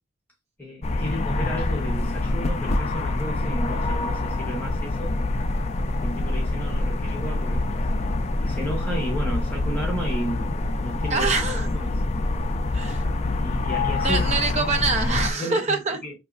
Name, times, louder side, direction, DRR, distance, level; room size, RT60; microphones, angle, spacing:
voice 1, 0.6-5.2 6.0-7.9 8.4-11.3 11.7-12.0 12.8-13.1 13.4-14.2 15.4-16.1, equal, 10° left, 1.1 m, -33 dB
sound 1, 0.8-15.3, left 2 dB, 30° left, 0.3 m, -25 dB
voice 2, 11.1-11.7 12.7-13.0 14.0-16.0, right 3 dB, 35° right, 0.6 m, -25 dB
5.3 x 3.0 x 2.4 m
head